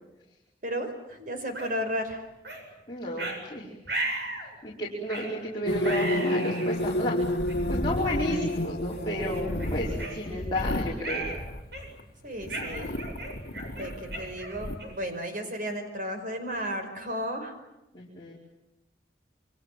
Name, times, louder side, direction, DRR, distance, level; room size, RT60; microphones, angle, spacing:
voice 1, 0.6-2.2 12.2-12.9 13.7-17.5, equal, 50° right, 6 dB, 5.0 m, -33 dB
sound 1, 1.5-1.7 2.4-2.6 3.2-3.4 3.9-4.5 5.1-5.3 5.8-6.7 7.5-7.6 8.3-8.5 8.9-9.0 9.6-10.7 11.0-11.4 11.7-12.0 12.5-15.1, right 2 dB, 65° right, 7.7 m, -35 dB
voice 2, 2.9-3.7 4.4-7.2 7.7-11.3 17.9-18.3, equal, 25° left, -5 dB, 4.9 m, -32 dB
sound 2, 5.7-10.5, left 1 dB, 75° left, 1.1 m, -30 dB
sound 3, 7.2-12.0 12.4-14.8, left 1 dB, 55° left, 2.0 m, -36 dB
28.5 x 25.0 x 7.5 m, 0.95 s
head